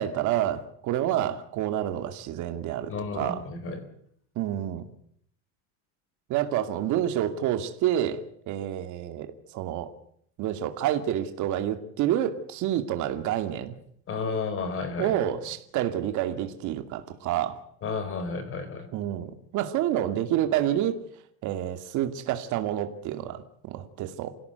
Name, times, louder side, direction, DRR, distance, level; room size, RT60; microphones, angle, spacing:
voice 1, 0.0-3.4 4.4-4.9 6.3-8.2 8.5-9.9 10.4-13.8 15.0-17.6 18.9-21.0 21.4-24.3, right 11 dB, 45° right, 8 dB, 2.5 m, -28 dB
voice 2, 2.9-3.8 14.1-15.1 17.8-18.9, left 4 dB, 30° left, 11 dB, 4.6 m, -32 dB
27.0 x 17.0 x 8.1 m, 0.68 s
cardioid pair, 155°, 42 cm